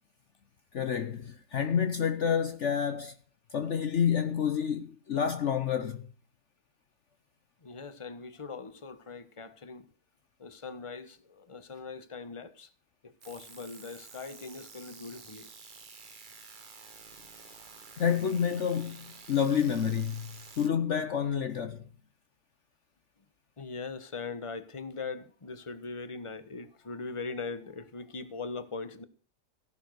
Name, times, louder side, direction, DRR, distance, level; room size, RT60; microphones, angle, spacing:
voice 1, 0.7-3.1 3.5-6.1 18.0-21.8, left 7 dB, 55° left, 1.1 m, -29 dB
voice 2, 7.6-9.9 10.4-12.7 13.0-15.5 23.6-29.0, left 4 dB, 20° left, 1.2 m, -41 dB
sound 1, 13.2-20.7, right 4 dB, 35° right, 1.3 m, -50 dB
16.0 x 11.0 x 6.4 m
omnidirectional pair, 1.6 m